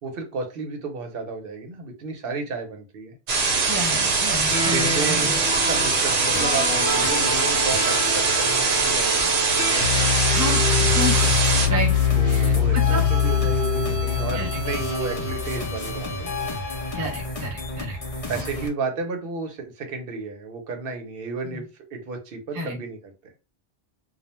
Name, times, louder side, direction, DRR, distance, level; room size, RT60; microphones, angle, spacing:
voice 1, 0.0-3.2 4.6-9.3 12.1-16.3 18.3-23.1, right 4 dB, 65° right, 4 dB, 0.8 m, -32 dB
sound 1, 3.3-11.7, right 4 dB, 90° right, 0.9 m, -22 dB
voice 2, 3.7-5.4 10.3-11.9 12.2-13.0 14.3-14.5 16.9-18.0 21.5-21.6 22.5-22.8, right 1 dB, 30° right, 1 dB, 0.4 m, -30 dB
sound 2, 4.5-17.0, left 6 dB, 75° left, 0.8 m, -25 dB
sound 3, 10.7-18.7, left 2 dB, 40° left, 0.6 m, -32 dB
2.3 x 2.1 x 2.9 m, 0.29 s
omnidirectional pair, 1.1 m